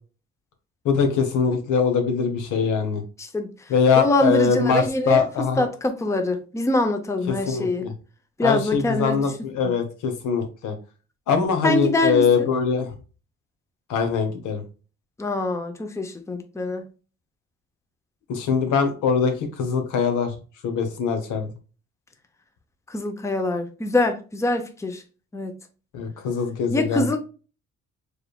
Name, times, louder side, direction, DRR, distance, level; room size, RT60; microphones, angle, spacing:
voice 1, 0.8-3.0 3.7-5.7 7.3-7.9 8.4-10.8 11.3-12.9 13.9-14.6 18.3-20.3 20.6-21.5 25.9-27.2, left 6 dB, 85° left, 1.1 m, -22 dB
voice 2, 3.2-3.5 4.0-5.3 5.6-7.9 8.4-9.3 9.6-9.7 11.6-12.5 15.2-16.8 22.9-25.0 25.3-25.5 26.7-27.2, left 2 dB, 10° left, 0.6 m, -24 dB
4.8 x 3.4 x 2.3 m
cardioid pair, 90°, 30 cm